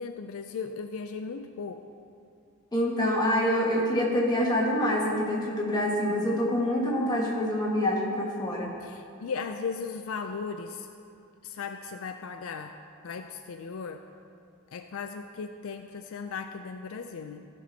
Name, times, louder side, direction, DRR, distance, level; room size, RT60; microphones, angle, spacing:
voice 1, 0.0-1.8 8.8-10.9 11.4-12.7 13.0-14.0 14.7-17.5, left 5 dB, 65° left, 6 dB, 0.4 m, -37 dB
voice 2, 2.7-8.7, left 1 dB, 20° left, -4 dB, 1.5 m, -26 dB
15.0 x 6.0 x 4.1 m, 2.5 s
head